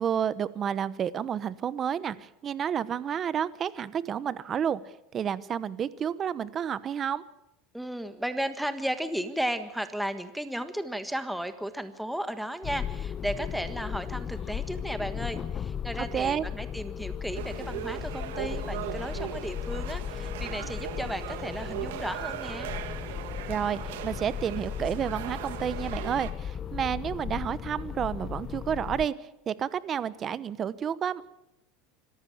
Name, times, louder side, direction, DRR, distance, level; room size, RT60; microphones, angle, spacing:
voice 1, 0.0-7.2 16.1-16.4 23.5-31.2, right 8 dB, 30° right, 17 dB, 1.0 m, -30 dB
voice 2, 7.7-22.7, equal, ahead, 10 dB, 1.5 m, -34 dB
sound 1, 12.6-29.1, left 8 dB, 30° left, 0.8 m, -36 dB
sound 2, 17.4-26.3, right 13 dB, 85° right, 2.1 m, -39 dB
25.5 x 14.5 x 8.7 m, 0.88 s
supercardioid pair, 135°, 0 cm